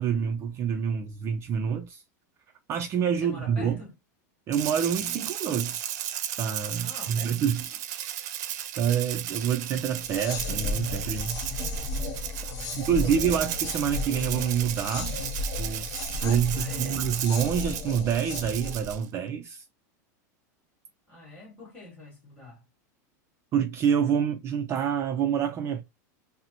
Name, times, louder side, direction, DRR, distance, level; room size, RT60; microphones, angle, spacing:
voice 1, 0.0-2.0 2.7-3.8 4.5-5.8 6.4-7.6 8.2-8.3 8.8-11.4 12.8-15.2 15.6-15.9 16.2-19.7 23.5-25.8, right 8 dB, 30° right, 0.3 m, -27 dB
voice 2, 3.2-3.9 6.7-7.7 12.4-13.2 16.2-17.1 21.1-22.6, left 2 dB, 10° left, 2.3 m, -46 dB
Rattle (instrument), 4.5-19.0, right 11 dB, 75° right, 0.5 m, -35 dB
sound 1, 9.9-19.0, left 3 dB, 45° left, 0.7 m, -34 dB
3.9 x 2.0 x 2.8 m
supercardioid pair, 140°, 9 cm